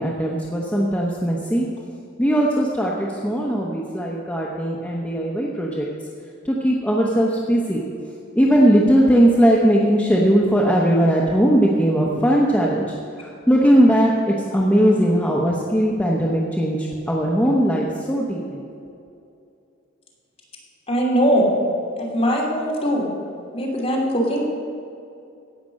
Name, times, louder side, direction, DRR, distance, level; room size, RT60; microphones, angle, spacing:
voice 1, 0.0-1.6 2.2-5.9 6.4-7.8 8.3-18.9, equal, 5° left, -3 dB, 1.0 m, -19 dB
voice 2, 20.9-21.5 22.0-23.1 23.5-24.5, equal, 30° left, -4 dB, 2.8 m, -20 dB
17.0 x 6.0 x 6.4 m, 2.6 s
head